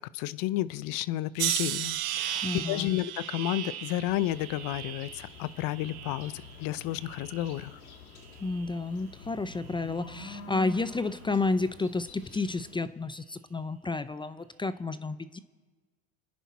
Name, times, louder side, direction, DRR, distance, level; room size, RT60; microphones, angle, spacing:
voice 1, 0.1-7.8, left 14 dB, 55° left, 18 dB, 0.7 m, -32 dB
sound 1, 1.4-6.5 7.0-7.7 8.4-8.7, right 13 dB, 80° right, 1.2 m, -35 dB
voice 2, 2.4-3.0 8.4-15.4, left 3 dB, 10° left, 13 dB, 0.6 m, -31 dB
sound 2, 4.1-12.8, left 4 dB, 90° left, 2.1 m, -48 dB
28.5 x 10.0 x 4.2 m, 1.4 s
hypercardioid pair, 85°, 42 cm